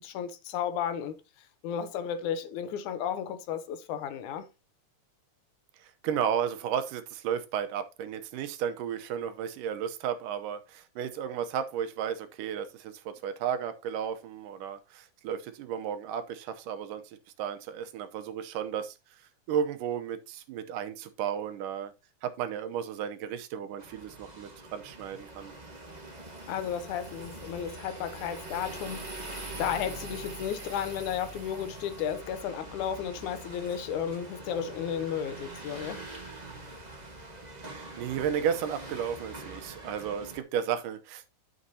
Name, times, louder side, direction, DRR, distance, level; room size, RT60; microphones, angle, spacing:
voice 1, 0.0-1.2 1.6-4.5 26.5-29.1 29.6-36.0, left 8 dB, 75° left, 2.1 m, -33 dB
voice 2, 5.8-19.0 19.5-21.9 22.2-25.5 37.6-41.3, right 8 dB, 85° right, 2.4 m, -33 dB
sound 1, 23.8-40.4, right 2 dB, 40° right, 0.6 m, -43 dB
11.0 x 6.5 x 2.8 m
omnidirectional pair, 3.7 m